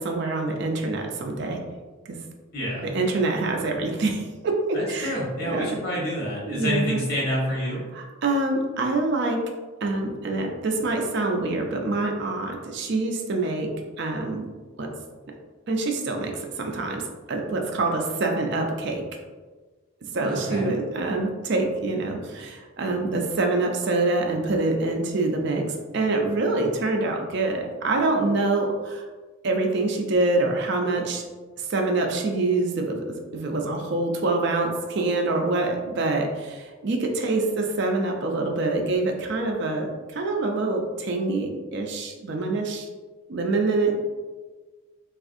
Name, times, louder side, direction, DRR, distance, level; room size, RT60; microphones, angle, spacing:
voice 1, 0.0-1.6 2.1-2.2 2.8-5.8 6.5-7.0 7.9-9.5 9.8-14.5 14.8-14.9 15.7-19.0 20.1-29.0 29.4-31.2 31.6-42.9 43.3-44.0, right 2 dB, 55° right, 2 dB, 0.4 m, -25 dB
voice 2, 2.5-2.9 4.7-7.8 20.1-20.7, equal, 45° left, -5 dB, 1.0 m, -28 dB
3.5 x 2.4 x 2.5 m, 1.3 s
head